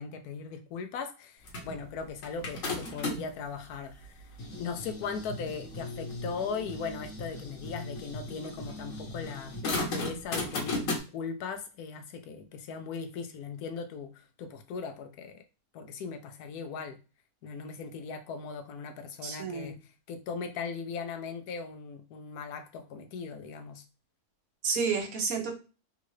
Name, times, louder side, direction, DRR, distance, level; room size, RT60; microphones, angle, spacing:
voice 1, 0.0-4.3 4.6-15.4 15.7-17.0 17.4-19.8 20.1-23.8, left 5 dB, 80° left, 7 dB, 1.1 m, -39 dB
sound 1, 1.5-3.4 4.0-11.0, left 2 dB, 60° left, 1.3 m, -36 dB
voice 2, 19.2-19.7 24.6-25.5, right 5 dB, 70° right, 3 dB, 1.3 m, -30 dB
3.6 x 2.5 x 3.0 m, 0.33 s
omnidirectional pair, 1.6 m